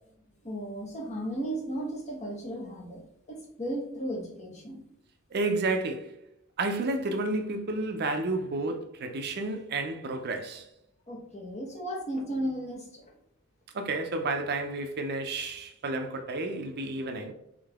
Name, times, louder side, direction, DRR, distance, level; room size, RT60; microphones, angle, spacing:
voice 1, 0.4-3.0 3.3-4.8 11.1-13.0, right 1 dB, 35° left, 1.2 m, -35 dB
voice 2, 5.3-6.1 6.6-10.7 13.7-17.3, right 2 dB, 50° right, 0.5 m, -31 dB
3.7 x 3.6 x 3.5 m
head